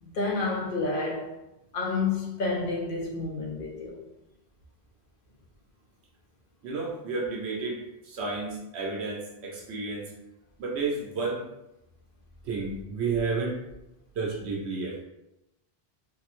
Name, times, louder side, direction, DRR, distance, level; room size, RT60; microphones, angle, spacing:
voice 1, 0.0-1.3 1.7-4.0, left 3 dB, 60° left, 0.7 m, -29 dB
voice 2, 6.6-10.1 10.6-11.5 12.4-13.6 14.1-15.0, right 4 dB, 90° right, 1.0 m, -31 dB
3.4 x 2.0 x 3.0 m
omnidirectional pair, 1.1 m